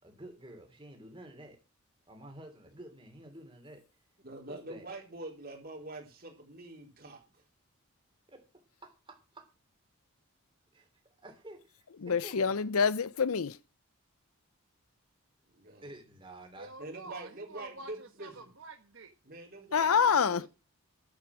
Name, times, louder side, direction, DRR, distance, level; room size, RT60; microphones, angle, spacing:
voice 1, 0.0-1.6 2.1-3.8 4.5-4.9 8.3-8.4 8.8-9.4 10.7-10.9 11.2-12.6 15.8-16.7, right 1 dB, 20° right, 3.1 m, -50 dB
voice 2, 4.2-7.4 15.5-15.9 16.8-18.5 19.2-20.4, right 2 dB, 45° right, 4.1 m, -45 dB
voice 3, 12.0-13.6 19.7-20.5, left 6 dB, 80° left, 0.6 m, -26 dB
voice 4, 16.6-19.1 19.8-20.5, right 2 dB, 60° right, 1.2 m, -48 dB
11.5 x 8.5 x 6.2 m
head